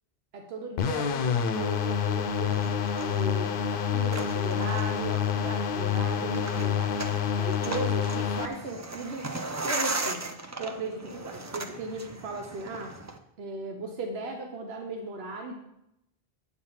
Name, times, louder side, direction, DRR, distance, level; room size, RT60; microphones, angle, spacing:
voice 1, 0.3-9.3 9.6-10.3 10.6-13.0 13.4-15.6, right 3 dB, 80° right, 3 dB, 1.1 m, -37 dB
sound 1, 0.8-8.5, left 8 dB, 65° left, 0.7 m, -28 dB
sound 2, 2.3-13.2, right 2 dB, 25° right, 0.4 m, -38 dB
8.4 x 4.8 x 5.6 m, 0.82 s
omnidirectional pair, 1.0 m